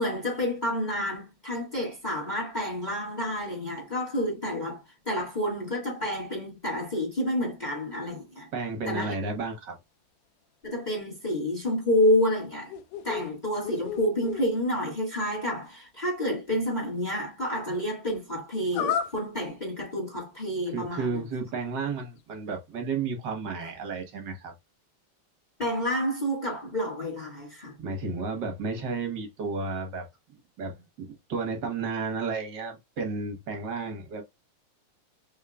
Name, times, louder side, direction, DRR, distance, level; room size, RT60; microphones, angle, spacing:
voice 1, 0.0-8.5 8.8-9.1 10.6-12.7 13.0-21.2 23.6-23.7 25.6-27.7, left 1 dB, 25° left, 0.9 m, -29 dB
voice 2, 8.5-9.8 20.7-24.5 27.8-30.1 30.6-34.2, right 4 dB, 65° right, 1.0 m, -32 dB
sound 1, 12.4-13.3 13.6-14.5 18.7-19.2, left 8 dB, 80° left, 2.1 m, -31 dB
5.5 x 3.4 x 2.3 m
omnidirectional pair, 3.7 m